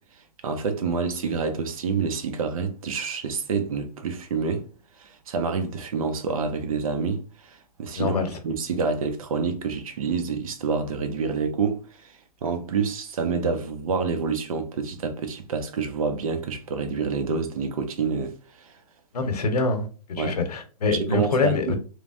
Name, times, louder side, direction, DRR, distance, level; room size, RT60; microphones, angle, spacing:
voice 1, 0.4-4.7 5.0-12.1 12.4-18.8 20.2-20.4 20.9-21.8, right 5 dB, 60° right, 0.7 m, -28 dB
voice 2, 8.0-8.3 19.1-21.8, left 4 dB, 75° left, 0.9 m, -25 dB
3.2 x 2.1 x 2.5 m
hypercardioid pair, 155°, 20 cm